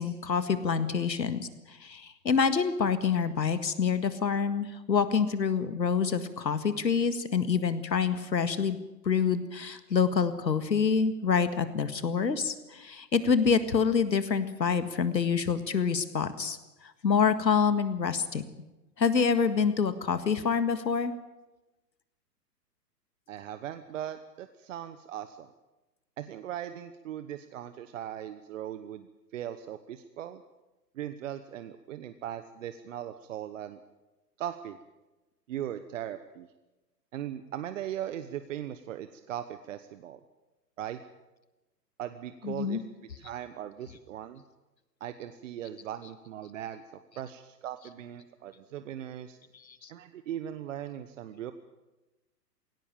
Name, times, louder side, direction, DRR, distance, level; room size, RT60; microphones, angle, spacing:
voice 1, 0.0-8.8 9.0-18.4 19.0-21.1 42.4-42.8 49.7-49.9, left 6 dB, 90° left, 11 dB, 1.9 m, -27 dB
voice 2, 23.3-25.5 26.2-30.4 30.9-33.8 34.4-34.8 35.5-36.5 37.1-40.2 40.8-41.0 42.0-42.8 43.2-44.4 45.0-49.4 49.9-51.5, right 11 dB, 50° right, 10 dB, 1.1 m, -39 dB
18.0 x 17.5 x 8.8 m, 1.1 s
hypercardioid pair, 125°, 49 cm